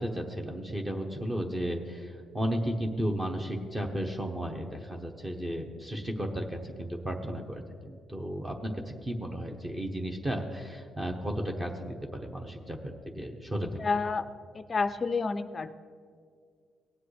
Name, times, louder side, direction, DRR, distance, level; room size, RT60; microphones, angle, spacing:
voice 1, 0.0-8.7 9.0-12.8 13.1-13.8, equal, 20° right, 2 dB, 1.1 m, -34 dB
voice 2, 13.8-14.2 14.5-15.7, left 4 dB, 35° left, 11 dB, 0.4 m, -29 dB
18.0 x 7.6 x 3.3 m, 2.1 s
cardioid pair, 90°, 0 cm